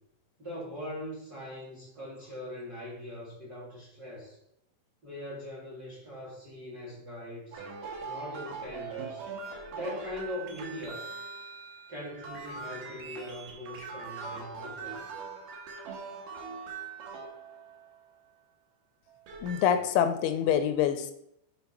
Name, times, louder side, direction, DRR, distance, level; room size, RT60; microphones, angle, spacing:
voice 1, 0.4-4.4 5.0-7.6 8.0-9.2 9.7-11.1 11.9-14.9, left 1 dB, 30° right, -4 dB, 2.2 m, -41 dB
sound 1, 7.5-18.0 19.1-19.8, right 4 dB, 65° right, 2.8 m, -41 dB
voice 2, 19.4-21.1, left 9 dB, 85° left, 9 dB, 3.0 m, -26 dB
7.0 x 5.1 x 5.6 m, 0.76 s
omnidirectional pair, 5.4 m